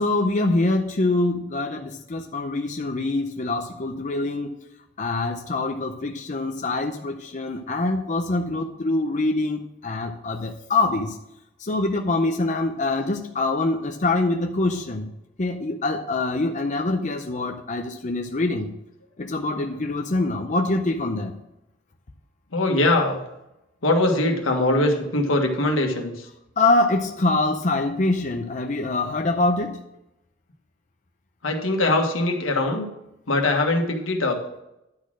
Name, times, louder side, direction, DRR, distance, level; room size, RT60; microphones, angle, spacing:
voice 1, 0.0-4.5 5.0-11.1 11.7-15.0 15.4-18.7 19.2-21.3 26.6-29.7, left 2 dB, 40° left, 3 dB, 0.6 m, -24 dB
voice 2, 19.3-19.8 20.4-20.5 22.5-23.2 23.8-26.3 31.4-32.9 33.3-34.4, left 2 dB, 85° left, 2 dB, 1.5 m, -22 dB
10.5 x 4.3 x 6.1 m, 0.87 s
head